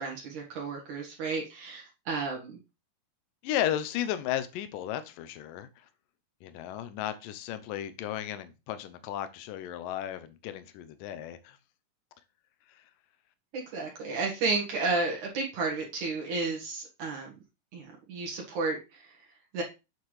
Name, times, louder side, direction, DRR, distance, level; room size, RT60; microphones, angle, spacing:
voice 1, 0.0-2.6 13.5-17.3 17.7-19.2 19.5-19.6, right 3 dB, 65° right, 3.0 m, -32 dB
voice 2, 3.4-5.7 6.4-11.6 12.8-12.9, left 11 dB, 85° left, 2.4 m, -34 dB
7.9 x 7.0 x 3.2 m
omnidirectional pair, 3.8 m